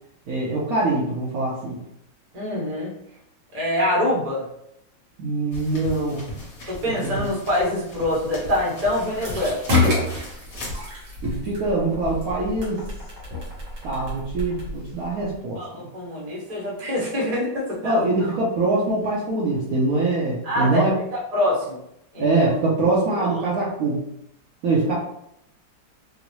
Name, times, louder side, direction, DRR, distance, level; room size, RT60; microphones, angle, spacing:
voice 1, 0.3-1.8 5.2-6.2 7.0-7.3 11.2-12.8 13.8-15.6 17.8-21.0 22.2-24.0 24.6-24.9, right 2 dB, 65° right, -5 dB, 0.9 m, -23 dB
voice 2, 2.3-2.9 3.5-4.4 6.7-9.6 15.6-18.0 20.4-21.8 22.1-22.3 23.2-23.3, left 1 dB, 30° right, -4 dB, 0.7 m, -25 dB
sound 1, 5.5-10.8, equal, 55° left, 1.2 m, -38 dB
sound 2, 9.1-15.4, left 2 dB, 90° right, 1.9 m, -27 dB
3.8 x 2.0 x 3.0 m, 0.77 s
omnidirectional pair, 2.0 m